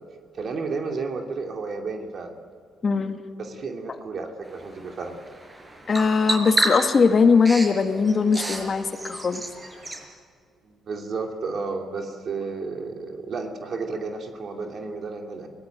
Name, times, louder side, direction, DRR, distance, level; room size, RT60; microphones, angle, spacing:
voice 1, 0.3-2.3 3.4-5.2 10.6-15.5, right 4 dB, 55° right, 3 dB, 2.7 m, -32 dB
voice 2, 2.8-3.2 5.9-9.4, left 5 dB, 40° left, 7 dB, 1.8 m, -20 dB
Bird vocalization bird call bird song, 4.4-10.0, right 1 dB, 25° right, 5.9 m, -31 dB
23.5 x 18.0 x 9.0 m, 2.1 s
cardioid pair, 90°, 0 cm